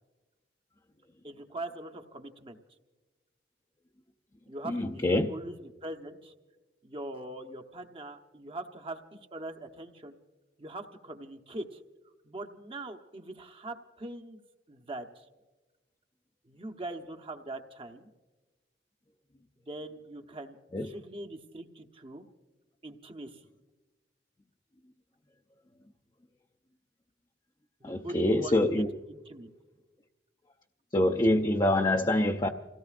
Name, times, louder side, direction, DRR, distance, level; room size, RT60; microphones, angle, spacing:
voice 1, 1.2-2.6 4.5-6.3 6.8-10.1 10.6-11.8 12.2-14.4 14.7-15.2 16.5-18.1 19.7-20.6 20.8-22.2 22.8-23.4 27.8-28.8 29.1-29.5, right 1 dB, 30° right, 6 dB, 0.9 m, -42 dB
voice 2, 4.6-5.3 20.7-20.9 27.8-28.9 30.9-32.5, left 1 dB, 25° left, 2 dB, 0.6 m, -25 dB
29.0 x 17.5 x 2.5 m, 1.2 s
head